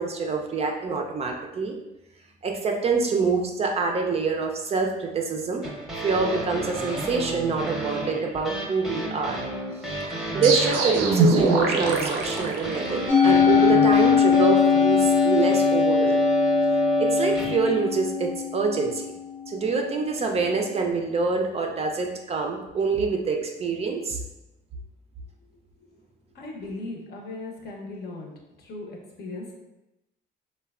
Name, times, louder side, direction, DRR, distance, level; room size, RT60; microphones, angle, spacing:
voice 1, 0.0-1.8 2.4-5.6 6.0-9.4 9.9-10.0 10.3-16.3 17.0-19.1 19.5-24.2, right 4 dB, 35° right, 2 dB, 0.4 m, -26 dB
sound 1, 5.6-17.8, right 1 dB, ahead, 0.7 m, -28 dB
sound 2, 10.4-13.2, right 3 dB, 90° right, 0.5 m, -23 dB
Musical instrument, 13.1-19.5, left 7 dB, 85° left, 1.0 m, -21 dB
voice 2, 26.3-28.3 28.6-29.5, left 2 dB, 55° left, 0 dB, 0.7 m, -37 dB
3.1 x 2.2 x 2.3 m, 0.95 s
cardioid pair, 90°, 19 cm